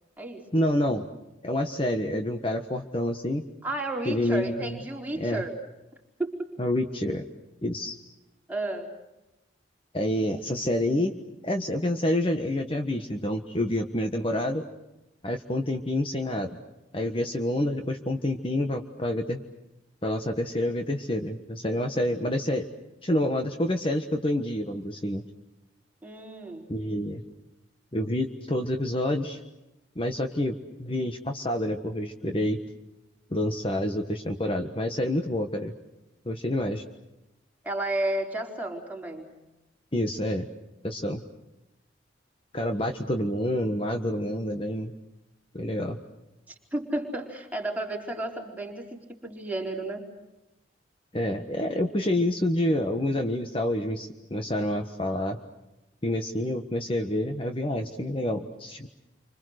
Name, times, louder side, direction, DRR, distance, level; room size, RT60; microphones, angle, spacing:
voice 1, 0.5-1.1 1.4-3.4 4.0-4.8 5.2-5.4 6.6-7.2 7.6-8.0 9.9-11.1 11.4-14.6 15.2-16.5 16.9-19.4 20.0-22.7 23.0-25.2 26.7-27.2 27.9-29.4 29.9-32.6 33.3-35.7 36.2-36.8 39.9-40.5 40.8-41.2 42.5-44.9 45.5-46.0 51.1-55.4 56.0-58.9, left 1 dB, 30° left, 5 dB, 1.4 m, -28 dB
voice 2, 3.6-5.5 6.2-6.5 8.5-8.9 26.0-26.6 37.6-39.3 46.5-50.0, right 2 dB, 10° right, 0 dB, 4.3 m, -32 dB
30.0 x 25.5 x 6.5 m, 0.95 s
head